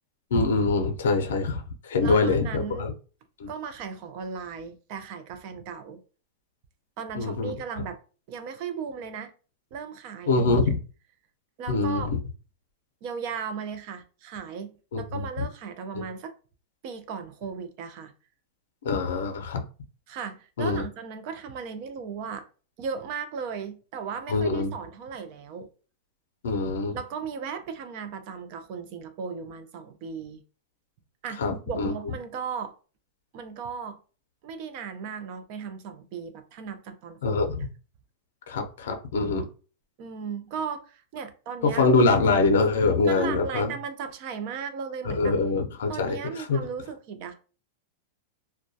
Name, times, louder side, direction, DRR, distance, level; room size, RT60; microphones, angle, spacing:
voice 1, 0.3-2.9 3.4-3.5 7.1-7.5 10.3-10.8 11.7-12.0 14.9-15.4 18.8-19.6 20.6-20.8 24.3-24.7 26.4-26.9 31.4-31.9 37.2-37.6 38.5-39.4 41.6-43.7 45.0-46.6, left 3 dB, 80° left, 0.5 m, -24 dB
voice 2, 2.0-2.9 3.5-6.0 7.0-8.0 8.3-9.3 9.7-10.7 11.6-12.1 13.0-16.4 16.8-18.1 20.1-22.5 22.8-25.7 26.9-30.4 31.2-31.4 31.7-32.7 33.3-34.0 34.4-37.4 40.0-41.9 43.0-45.4 45.9-47.3, right 6 dB, 40° right, 0.4 m, -36 dB
2.2 x 2.1 x 2.6 m
supercardioid pair, 160°, 0 cm